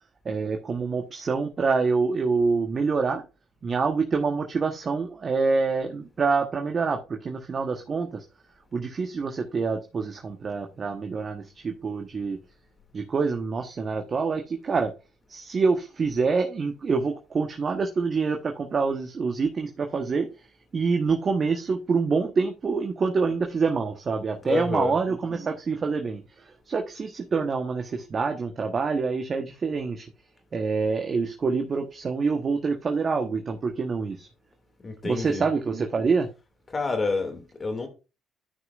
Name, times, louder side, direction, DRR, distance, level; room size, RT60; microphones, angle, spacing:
voice 1, 0.2-3.2 3.6-8.2 8.7-12.4 12.9-14.9 15.3-20.3 20.7-30.0 30.5-34.3 35.0-36.3, right 4 dB, 45° right, 1.3 m, -26 dB
voice 2, 24.4-25.0 34.8-35.5 36.7-37.9, left 3 dB, 35° left, 2.5 m, -28 dB
12.5 x 6.1 x 2.6 m
hypercardioid pair, 55°, 0 cm